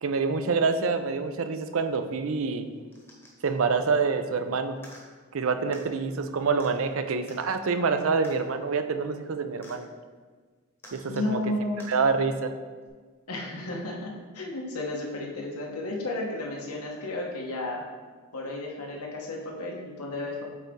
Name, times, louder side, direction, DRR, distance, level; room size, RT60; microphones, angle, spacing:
voice 1, 0.0-2.7 3.4-4.8 5.3-9.9 10.9-11.4 11.9-12.5, right 4 dB, 70° right, 9 dB, 0.5 m, -26 dB
sound 1, 2.9-3.5 4.8-5.0 5.7-5.9 6.6-6.7 7.3-7.5 8.2-8.4 9.6-9.8 10.8-11.3 11.8-12.0 12.9-13.0, left 1 dB, 10° left, 1.0 m, -49 dB
voice 2, 11.1-11.9 13.3-17.9 18.3-20.4, left 2 dB, 90° left, -1 dB, 1.2 m, -33 dB
8.2 x 4.0 x 3.6 m, 1.5 s
head